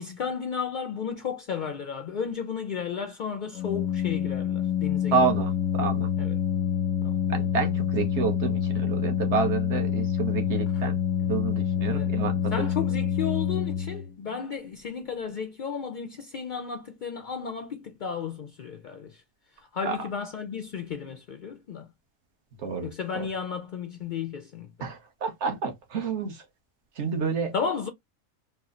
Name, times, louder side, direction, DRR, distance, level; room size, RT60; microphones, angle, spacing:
voice 1, 0.0-5.3 6.2-6.4 7.0-7.2 10.7-10.8 11.9-12.1 12.5-19.2 19.6-21.9 22.8-24.9 27.5-27.9, left 6 dB, 70° left, 0.4 m, -33 dB
Organ, 3.5-14.3, left 9 dB, 90° left, 1.0 m, -27 dB
voice 2, 5.1-6.1 7.3-10.9 11.2-12.7 19.9-20.0 22.6-22.9 23.1-23.3 24.8-26.4 27.0-27.5, right 5 dB, 60° right, 1.2 m, -29 dB
4.4 x 2.1 x 2.4 m
omnidirectional pair, 1.4 m